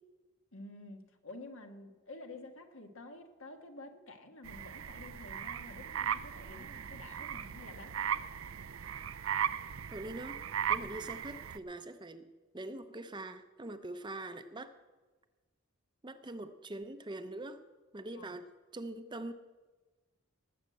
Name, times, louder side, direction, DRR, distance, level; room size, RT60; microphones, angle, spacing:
voice 1, 0.5-8.3 18.2-18.3, left 2 dB, 75° left, 5 dB, 1.6 m, -50 dB
sound 1, 4.4-11.6, right 8 dB, 75° right, 0.5 m, -37 dB
voice 2, 9.9-10.4 10.7-14.7 16.0-17.6 17.9-19.3, right 2 dB, 20° right, 9 dB, 0.7 m, -43 dB
19.0 x 6.6 x 7.8 m, 1.3 s
head